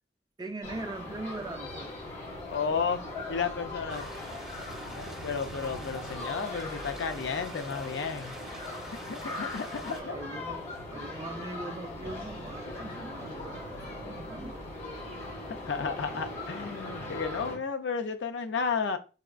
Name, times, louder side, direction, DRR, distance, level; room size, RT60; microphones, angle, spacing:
voice 1, 0.4-1.9 9.8-14.7, right 2 dB, 20° right, 0.3 m, -41 dB
sound 1, 0.6-17.6, left 2 dB, 35° left, 1.2 m, -40 dB
voice 2, 2.5-3.0 3.3-4.1 4.9-8.3 9.1-10.2 15.5-19.0, left 5 dB, 75° left, 0.5 m, -32 dB
sound 2, 3.9-10.0, equal, 5° right, 1.0 m, -46 dB
4.8 x 2.4 x 2.3 m
head